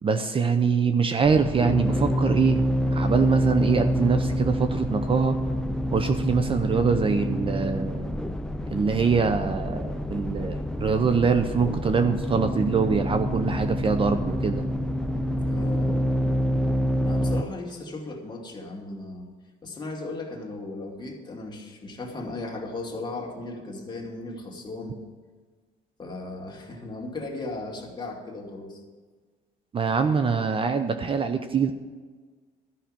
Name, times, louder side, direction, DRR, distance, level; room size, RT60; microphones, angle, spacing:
voice 1, 0.0-2.7 2.9-5.3 5.9-8.2 8.7-14.6 29.7-31.7, right 5 dB, 30° right, 8 dB, 0.7 m, -24 dB
sound 1, 1.2-17.4, equal, 5° left, 0.6 m, -27 dB
voice 2, 15.5-16.1 17.0-19.3 19.6-25.0 26.0-28.8, left 2 dB, 25° left, 0 dB, 2.4 m, -36 dB
13.0 x 5.8 x 9.0 m, 1.4 s
cardioid pair, 110°, 17 cm